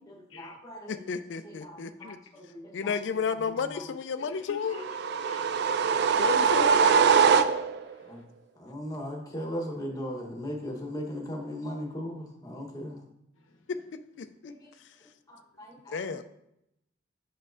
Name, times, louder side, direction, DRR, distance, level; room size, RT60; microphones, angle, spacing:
voice 1, 0.1-1.1 1.4-2.9 3.4-3.8 8.0-8.2 8.6-13.1 14.4-14.6 15.3-16.2, equal, 20° left, 0 dB, 1.1 m, -38 dB
voice 2, 0.9-2.2 2.7-4.8 6.2-7.1 14.2-14.5 15.9-16.2, left 5 dB, 65° left, 9 dB, 0.4 m, -32 dB
voice 3, 4.3-4.8 5.2-5.8, left 2 dB, 90° left, 4 dB, 0.8 m, -46 dB
sound 1, 4.7-7.9, right 6 dB, 55° right, 0.3 m, -22 dB
7.4 x 5.8 x 2.6 m, 0.80 s
head